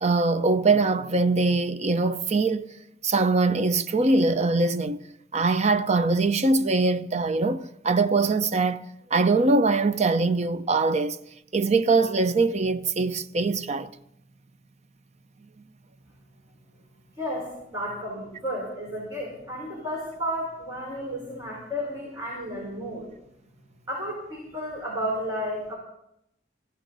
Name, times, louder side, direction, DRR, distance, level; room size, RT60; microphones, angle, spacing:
voice 1, 0.0-2.7 3.0-5.0 5.3-11.2 11.5-13.9, right 3 dB, 35° right, 0.7 m, -22 dB
voice 2, 17.2-23.1 23.9-25.8, equal, 15° right, 4.8 m, -32 dB
20.5 x 15.5 x 4.0 m
head